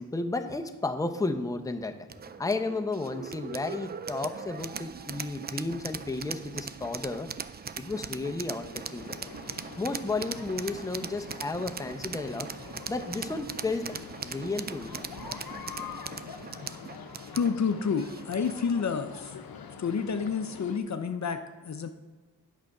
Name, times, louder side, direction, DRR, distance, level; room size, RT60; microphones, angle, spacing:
voice 1, 0.0-2.0 2.4-7.3 7.8-9.3 9.8-12.5 12.9-14.0 14.2-15.0, left 3 dB, 10° left, 5 dB, 0.6 m, -33 dB
sound 1, 2.1-18.6, right 6 dB, 30° right, 0.3 m, -40 dB
sound 2, 8.7-20.8, left 7 dB, 90° left, 0.7 m, -45 dB
voice 2, 17.3-19.3 19.8-21.9, left 6 dB, 50° left, 8 dB, 0.6 m, -29 dB
8.3 x 6.5 x 4.8 m, 1.3 s
wide cardioid pair, 75°, 35 cm